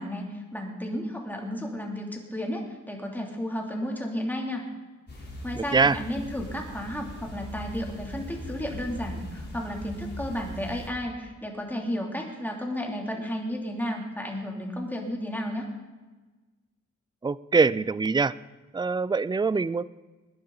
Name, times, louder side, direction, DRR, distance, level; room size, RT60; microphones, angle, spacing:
voice 1, 0.0-4.6 5.4-15.7, equal, 5° left, 0 dB, 2.8 m, -33 dB
sound 1, 5.1-10.9, equal, 35° left, 3.5 m, -40 dB
voice 2, 5.5-6.0 17.2-18.3 18.7-19.8, right 4 dB, 15° right, 19 dB, 0.3 m, -23 dB
21.5 x 9.9 x 3.9 m, 1.3 s
cardioid pair, 95°, 30 cm